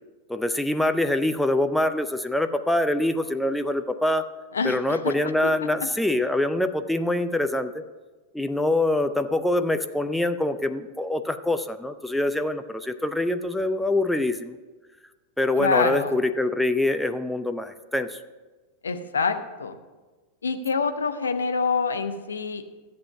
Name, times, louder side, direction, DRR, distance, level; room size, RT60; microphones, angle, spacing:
voice 1, 0.3-4.2 4.6-7.8 8.3-14.5 15.4-18.2, left 1 dB, 5° left, 8 dB, 0.5 m, -24 dB
voice 2, 4.5-5.1 15.6-16.2 18.8-19.8 20.4-22.6, left 5 dB, 70° left, 8 dB, 0.9 m, -26 dB
13.5 x 7.6 x 5.8 m, 1.3 s
figure-of-eight pair, 90°, 0 cm